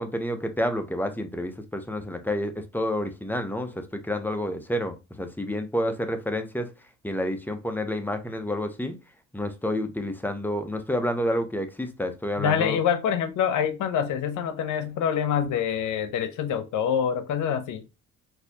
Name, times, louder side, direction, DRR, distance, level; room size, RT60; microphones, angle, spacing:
voice 1, 0.0-6.7 7.0-9.0 9.3-12.8, left 1 dB, 5° left, 0.6 m, -29 dB
voice 2, 12.4-17.8, left 8 dB, 80° left, 0.7 m, -26 dB
4.0 x 2.8 x 2.7 m
cardioid pair, 90°, 30 cm